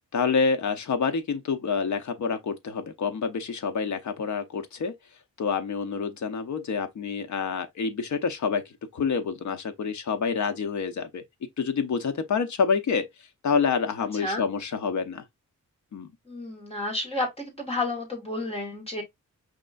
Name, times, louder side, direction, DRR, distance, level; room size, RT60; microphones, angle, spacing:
voice 1, 0.1-4.9 5.4-8.6 8.9-11.2 11.6-13.1 13.4-15.2 15.9-16.1, left 5 dB, 65° left, 0.8 m, -27 dB
voice 2, 14.0-14.5 16.3-19.0, left 2 dB, 20° left, 1.9 m, -31 dB
5.1 x 3.3 x 2.5 m
wide cardioid pair, 175°, 31 cm